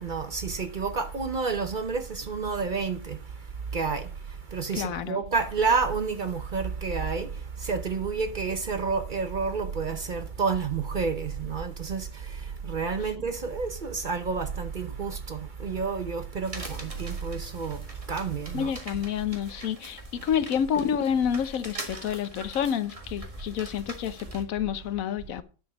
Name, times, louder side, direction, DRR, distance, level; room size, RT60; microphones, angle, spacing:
voice 1, 0.0-18.7, right 5 dB, 45° right, 0.8 m, -30 dB
voice 2, 4.7-5.2 18.5-25.4, left 8 dB, 80° left, 1.2 m, -29 dB
sound 1, 16.4-24.4, right 2 dB, 25° right, 1.6 m, -42 dB
10.0 x 5.2 x 6.1 m
omnidirectional pair, 1.4 m